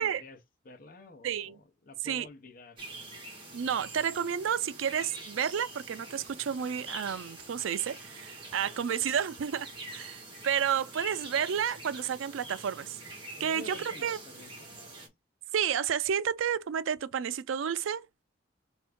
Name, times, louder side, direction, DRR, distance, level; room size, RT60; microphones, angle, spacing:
voice 1, 0.0-2.8 8.6-8.8 13.4-15.0, left 3 dB, 45° left, 0.8 m, -50 dB
voice 2, 1.2-1.6 2.0-2.3 3.5-13.0 13.4-14.2 15.5-18.2, right 8 dB, 90° right, 0.4 m, -31 dB
sound 1, 2.8-15.1, right 2 dB, 25° right, 1.3 m, -45 dB
4.5 x 2.7 x 3.4 m
head